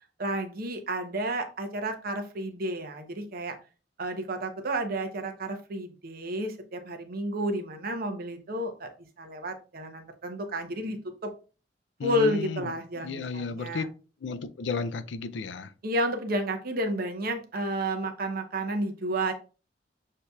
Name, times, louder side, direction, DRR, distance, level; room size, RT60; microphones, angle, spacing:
voice 1, 0.2-3.6 4.0-8.9 9.2-11.3 12.0-13.9 15.8-19.3, right 1 dB, 55° right, 0.8 m, -31 dB
voice 2, 12.0-12.7 13.0-13.9 14.2-15.7, left 4 dB, 85° left, 0.4 m, -33 dB
6.5 x 2.7 x 2.3 m
head